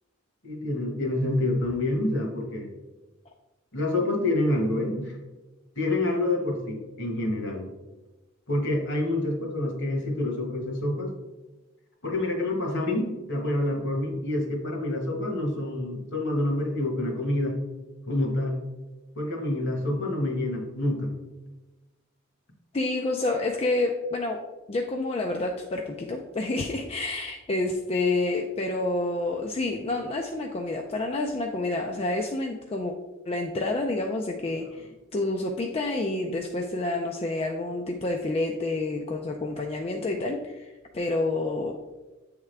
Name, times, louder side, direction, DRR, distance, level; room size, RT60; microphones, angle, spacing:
voice 1, 0.4-2.7 3.7-5.1 5.7-7.6 8.5-11.1 12.0-17.6 18.0-18.6 19.1-21.1, left 1 dB, 60° left, 2 dB, 1.3 m, -27 dB
voice 2, 22.7-24.4 24.7-32.9 33.3-41.7, left 2 dB, 30° left, 1 dB, 0.4 m, -28 dB
8.2 x 3.6 x 3.3 m, 1.1 s
head